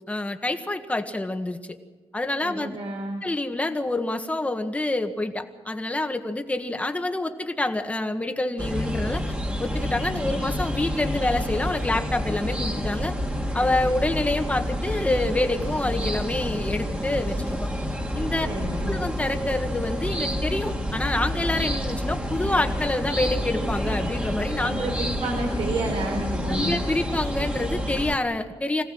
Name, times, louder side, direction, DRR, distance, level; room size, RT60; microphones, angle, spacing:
voice 1, 0.1-1.6 2.1-2.8 3.2-9.2 9.6-13.1 13.5-17.7 18.1-18.5 18.9-24.9 26.5-28.8, left 2 dB, 15° left, 5 dB, 1.6 m, -27 dB
voice 2, 2.4-3.2 10.0-10.4 18.4-19.0 24.6-26.7, right 1 dB, 75° right, 2 dB, 3.9 m, -30 dB
sound 1, 8.6-28.2, equal, 15° right, 2.1 m, -28 dB
26.0 x 17.5 x 6.3 m, 1.3 s
wide cardioid pair, 150°, 10 cm